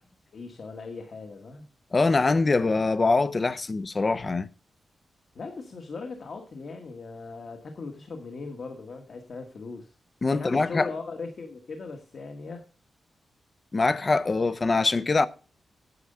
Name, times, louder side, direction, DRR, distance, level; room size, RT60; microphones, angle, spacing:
voice 1, 0.3-1.6 5.3-9.9 10.3-12.6, left 4 dB, 50° left, 1.5 m, -39 dB
voice 2, 1.9-4.5 10.2-10.9 13.7-15.3, left 3 dB, 30° left, 0.5 m, -23 dB
9.5 x 7.8 x 6.6 m
wide cardioid pair, 155°, 0 cm